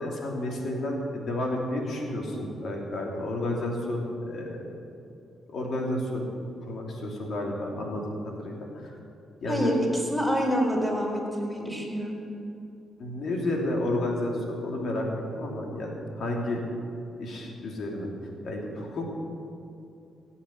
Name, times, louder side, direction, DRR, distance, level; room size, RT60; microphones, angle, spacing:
voice 1, 0.0-4.6 5.5-8.7 9.4-9.7 13.0-15.1 15.3-16.6 17.2-18.1 18.4-19.0, left 1 dB, 65° left, 0 dB, 2.8 m, -31 dB
voice 2, 9.4-12.2, equal, ahead, -2 dB, 4.4 m, -27 dB
16.5 x 7.4 x 8.2 m, 2.7 s
cardioid pair, 75°, 0 cm